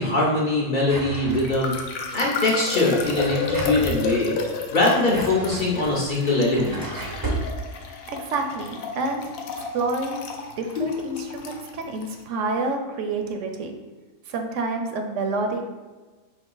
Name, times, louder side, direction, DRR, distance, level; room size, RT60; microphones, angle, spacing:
voice 1, 0.0-1.8 2.1-4.4 4.7-6.8 10.8-11.5, left 2 dB, 50° left, -4 dB, 0.6 m, -22 dB
Drawer open or close, 0.8-1.8 2.9-4.0 4.8-7.5, right 2 dB, 30° right, 0.4 m, -33 dB
sound 1, 1.3-12.2, left 4 dB, 85° left, 1.0 m, -32 dB
voice 2, 8.1-10.3 10.6-13.7 14.3-15.7, right 3 dB, 70° right, 4 dB, 0.9 m, -28 dB
4.4 x 2.8 x 3.8 m, 1.3 s
omnidirectional pair, 1.4 m